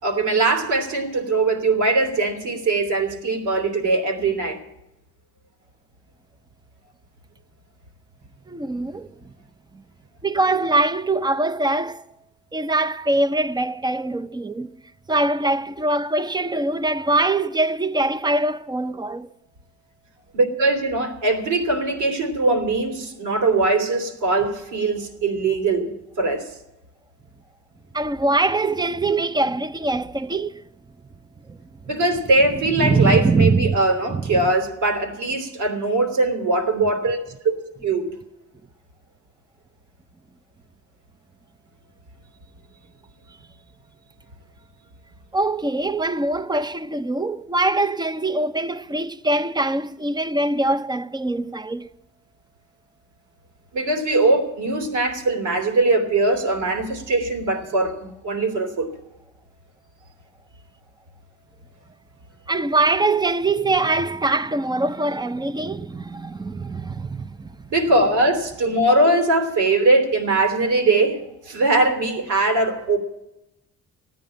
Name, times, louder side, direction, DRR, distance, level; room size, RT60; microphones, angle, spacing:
voice 1, 0.0-4.6 20.3-25.9 26.2-26.5 31.9-37.5 37.8-38.0 53.7-58.9 67.7-73.0, right 2 dB, 80° right, 3.0 m, -21 dB
voice 2, 8.5-9.3 9.7-9.8 10.2-12.0 12.5-14.7 15.1-19.3 27.9-30.6 31.5-31.6 32.8-33.8 34.1-34.5 45.3-51.9 62.5-67.7, right 2 dB, 15° right, 0.6 m, -23 dB
14.0 x 9.4 x 8.7 m
cardioid pair, 90°, 30 cm